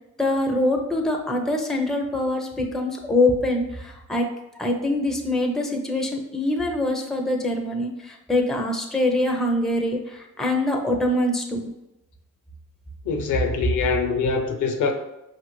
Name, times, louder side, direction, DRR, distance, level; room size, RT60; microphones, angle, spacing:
voice 1, 0.2-4.3 4.6-11.7, left 1 dB, ahead, 0.6 m, -24 dB
voice 2, 13.0-14.9, left 5 dB, 75° left, 0.7 m, -24 dB
5.2 x 2.5 x 3.0 m
cardioid pair, 90°, 30 cm